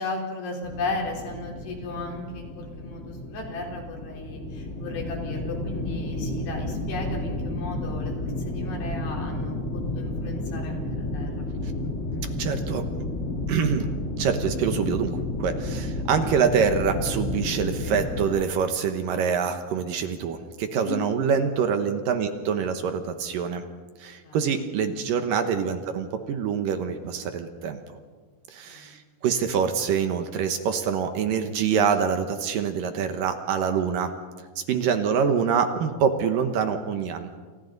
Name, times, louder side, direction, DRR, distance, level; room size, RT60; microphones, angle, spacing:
voice 1, 0.0-11.5 20.8-21.0 24.2-24.6 28.7-28.9, left 2 dB, 85° left, 0 dB, 6.0 m, -35 dB
sound 1, 0.6-18.3, left 1 dB, 25° left, 1.7 m, -31 dB
voice 2, 12.4-12.9 13.5-13.9 14.2-23.7 24.0-28.0 28.5-34.1 34.6-37.3, right 6 dB, 65° right, 7 dB, 2.5 m, -25 dB
30.0 x 28.0 x 4.0 m, 1.5 s
omnidirectional pair, 4.7 m